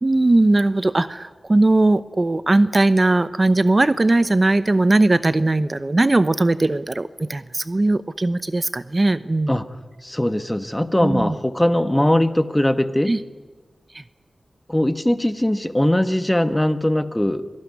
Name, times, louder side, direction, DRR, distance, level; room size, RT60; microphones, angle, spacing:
voice 1, 0.0-9.6 11.0-11.4 13.1-13.2 13.9-14.0, right 2 dB, 35° right, 14 dB, 0.8 m, -19 dB
voice 2, 10.0-13.1 14.7-17.4, left 1 dB, 10° left, 10 dB, 1.4 m, -20 dB
25.5 x 18.5 x 9.6 m, 1.3 s
wide cardioid pair, 70°, 0 cm